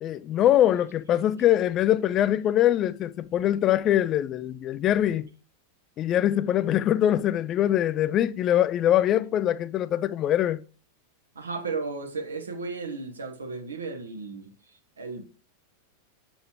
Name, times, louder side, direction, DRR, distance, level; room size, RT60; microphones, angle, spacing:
voice 1, 0.0-5.3 6.0-10.6, left 12 dB, 30° left, 0.4 m, -23 dB
voice 2, 11.3-15.3, right 4 dB, 75° right, 1.2 m, -35 dB
7.1 x 6.0 x 3.0 m
figure-of-eight pair, 90°, 0 cm